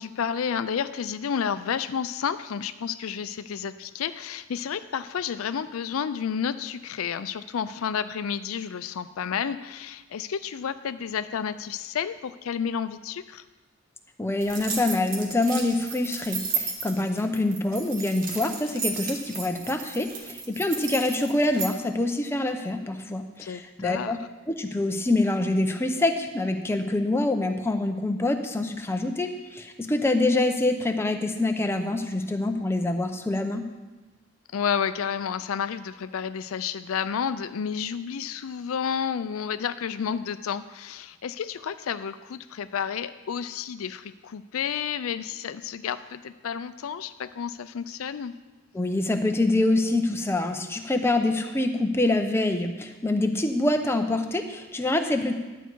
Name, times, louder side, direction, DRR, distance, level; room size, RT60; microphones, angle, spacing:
voice 1, 0.0-13.4 23.4-24.2 34.5-48.3, left 7 dB, 75° left, 13 dB, 0.4 m, -31 dB
voice 2, 14.2-24.2 24.5-33.6 48.7-55.3, left 2 dB, 10° left, 5 dB, 0.6 m, -25 dB
sound 1, 14.4-21.7, right 5 dB, 40° right, 1.3 m, -33 dB
11.5 x 8.0 x 4.6 m, 1.2 s
head